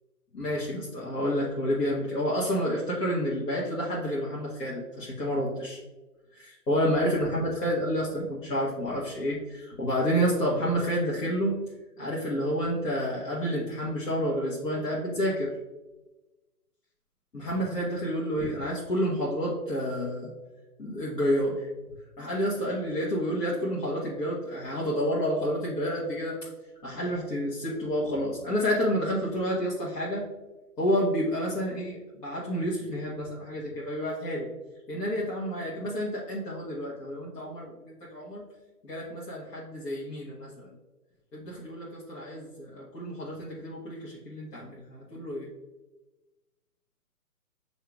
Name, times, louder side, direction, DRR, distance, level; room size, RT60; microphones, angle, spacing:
voice 1, 0.3-5.8 6.3-11.6 12.0-15.5 17.3-20.3 20.8-21.7 22.2-26.4 26.8-30.2 30.8-34.5 34.9-38.4 38.8-40.7 41.3-45.5, equal, 80° left, -6 dB, 1.3 m, -29 dB
7.3 x 2.8 x 2.3 m, 1.1 s
hypercardioid pair, 160°, 47 cm